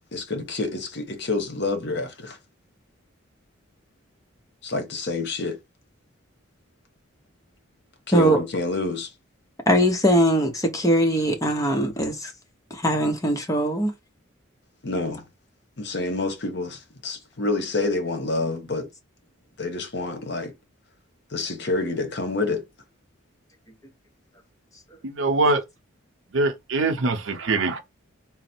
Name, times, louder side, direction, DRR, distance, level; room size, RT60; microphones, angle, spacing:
voice 1, 0.1-2.4 4.6-5.6 8.1-9.1 14.8-15.2 15.8-18.9 19.6-20.5 21.3-22.6, left 2 dB, 55° left, 0.9 m, -27 dB
voice 2, 9.7-12.3 12.7-13.9, equal, 15° left, 0.7 m, -21 dB
voice 3, 25.0-25.6 26.3-27.8, right 3 dB, 75° right, 0.7 m, -23 dB
3.9 x 2.0 x 4.3 m
head